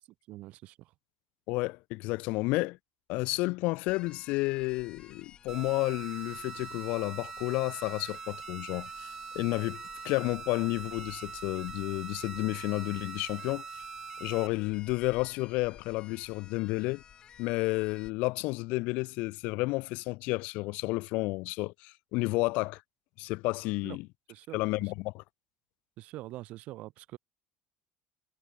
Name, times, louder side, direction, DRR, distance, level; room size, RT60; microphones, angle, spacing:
voice 1, 0.3-0.9 23.8-24.0 24.3-24.9 26.0-27.2, right 17 dB, 60° right, 2.6 m, -45 dB
voice 2, 1.5-2.8 3.1-13.6 14.2-17.0 17.4-22.8 23.2-24.1 24.5-25.2, left 23 dB, 70° left, 0.7 m, -31 dB
sound 1, 3.9-18.1, left 9 dB, 35° left, 4.0 m, -54 dB
sound 2, 5.5-14.5, right 6 dB, 25° right, 3.0 m, -43 dB
cardioid pair, 145°, 3 cm